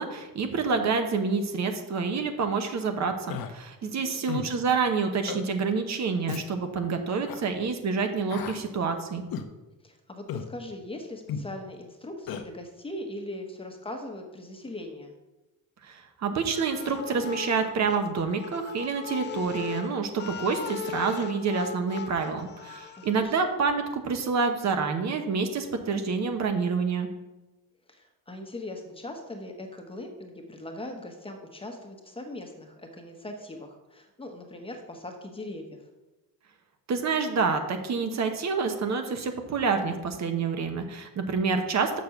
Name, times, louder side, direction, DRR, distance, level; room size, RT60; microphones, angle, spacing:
voice 1, 0.0-9.2 15.8-27.1 36.9-42.0, right 5 dB, 45° right, 6 dB, 1.0 m, -28 dB
Human voice, 3.3-3.5 4.3-4.5 5.3-5.5 6.3-6.4 7.2-7.4 8.3-8.6 9.3-9.5 10.3-10.5 11.3-11.5 12.3-12.4, left 7 dB, 70° left, 0.9 m, -34 dB
voice 2, 3.8-4.3 9.8-15.1 23.0-23.3 27.9-35.8, left 1 dB, 15° left, 3 dB, 1.0 m, -40 dB
sound 1, 16.5-23.2, left 7 dB, 30° left, 0.4 m, -39 dB
6.7 x 6.5 x 5.9 m, 1.1 s
cardioid pair, 150°, 37 cm